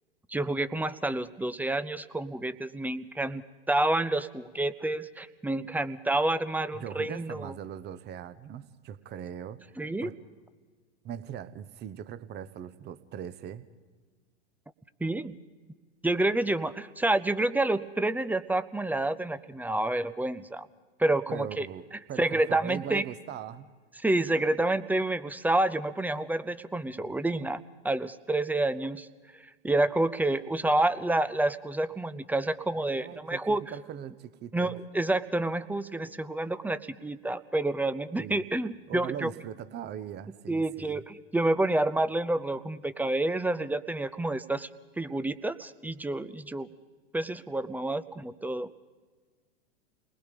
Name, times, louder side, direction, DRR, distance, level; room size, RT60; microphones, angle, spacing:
voice 1, 0.3-7.5 9.8-10.1 15.0-15.4 16.0-20.7 21.0-21.7 22.2-23.0 24.0-29.1 29.4-33.6 34.5-39.3 40.5-44.7 45.0-46.7 47.1-48.7, right 2 dB, 5° right, 14 dB, 0.6 m, -29 dB
voice 2, 6.7-9.7 10.0-10.1 11.0-13.7 21.3-23.7 32.7-34.8 38.2-38.4 38.9-41.0, right 9 dB, 30° right, 15 dB, 1.0 m, -40 dB
29.5 x 20.0 x 5.3 m, 1.4 s
hypercardioid pair, 95°, 32 cm